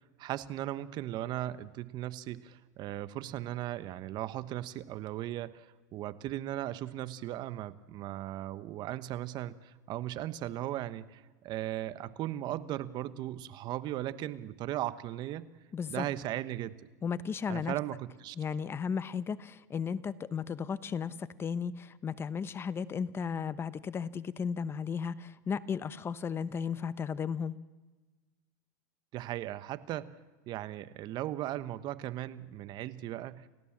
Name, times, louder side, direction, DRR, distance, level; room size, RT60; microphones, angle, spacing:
voice 1, 0.2-15.5 15.9-16.7 17.5-18.4 29.1-30.1 30.5-33.5, right 13 dB, 45° right, 14 dB, 1.2 m, -37 dB
voice 2, 15.7-16.1 17.0-17.7 18.4-27.6, left 6 dB, 25° left, 15 dB, 0.9 m, -35 dB
29.5 x 15.5 x 7.4 m, 1.2 s
supercardioid pair, 115°, 10 cm